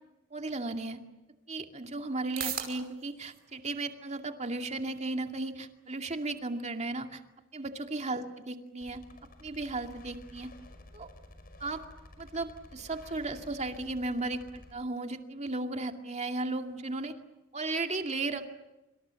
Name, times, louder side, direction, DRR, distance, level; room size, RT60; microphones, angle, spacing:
voice 1, 0.3-1.0 1.5-7.2 7.5-9.0 9.4-10.5 10.9-11.1 11.6-11.8 12.2-17.1 17.5-18.5, right 2 dB, 35° right, 5 dB, 2.4 m, -35 dB
sound 1, 0.9-17.8, right 9 dB, 50° right, 5.5 m, -49 dB
sound 2, 8.8-14.7, left 1 dB, 50° left, 5.6 m, -52 dB
27.0 x 27.0 x 7.1 m, 1.0 s
head